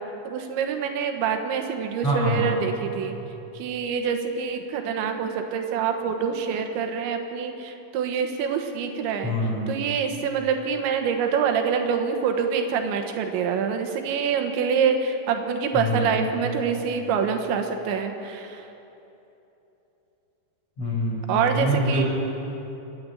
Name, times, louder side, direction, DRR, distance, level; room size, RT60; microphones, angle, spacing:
voice 1, 0.3-3.2 3.6-9.3 9.7-18.6 21.3-22.0, right 6 dB, 90° right, 5 dB, 3.6 m, -26 dB
voice 2, 2.0-2.6 9.2-9.7 15.7-16.4 20.8-22.1, equal, 35° left, -5 dB, 7.3 m, -25 dB
28.0 x 10.5 x 8.8 m, 3.0 s
omnidirectional pair, 5.2 m